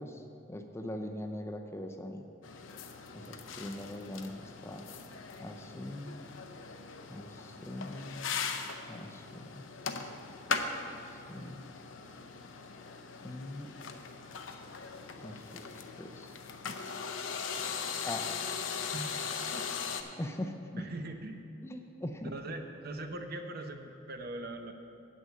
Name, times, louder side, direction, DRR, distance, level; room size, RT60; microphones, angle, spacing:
voice 1, 0.0-2.3 3.1-4.9 5.4-6.2 7.1-8.3 8.9-9.6 11.1-11.7 13.2-13.7 15.1-16.4 18.0-18.6 20.2-20.8 21.6-22.3, left 1 dB, 15° left, 5 dB, 0.5 m, -42 dB
sound 1, 2.4-20.0, left 5 dB, 80° left, 0.6 m, -40 dB
voice 2, 20.8-21.5 22.3-24.7, right 2 dB, 55° right, 5 dB, 0.8 m, -41 dB
8.6 x 6.3 x 7.5 m, 2.6 s
head